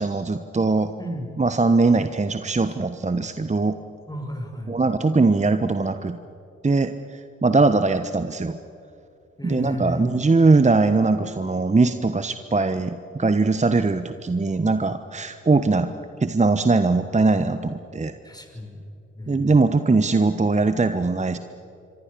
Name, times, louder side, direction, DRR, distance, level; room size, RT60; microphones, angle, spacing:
voice 1, 0.0-0.9 1.4-3.8 4.7-6.2 6.6-8.6 9.4-15.9 16.2-18.1 19.3-21.4, right 3 dB, 20° right, 10 dB, 1.2 m, -21 dB
voice 2, 4.1-4.7 9.4-10.1 18.2-18.8 19.1-19.4, equal, 10° left, 4 dB, 6.3 m, -32 dB
29.0 x 25.0 x 6.9 m, 2.5 s
hypercardioid pair, 40°, 35 cm